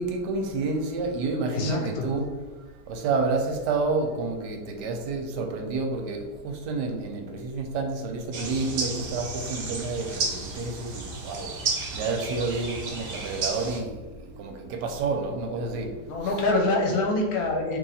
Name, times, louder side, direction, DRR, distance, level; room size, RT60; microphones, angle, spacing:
voice 1, 0.0-2.3 2.9-11.5 11.9-13.9 14.4-15.9 16.2-16.4, right 3 dB, 85° right, 3 dB, 1.2 m, -29 dB
voice 2, 1.5-2.1 16.1-17.8, left 2 dB, 70° left, 1 dB, 1.0 m, -25 dB
sound 1, 8.3-13.8, right 4 dB, 60° right, 0.7 m, -33 dB
3.0 x 2.8 x 4.0 m, 1.3 s
omnidirectional pair, 1.8 m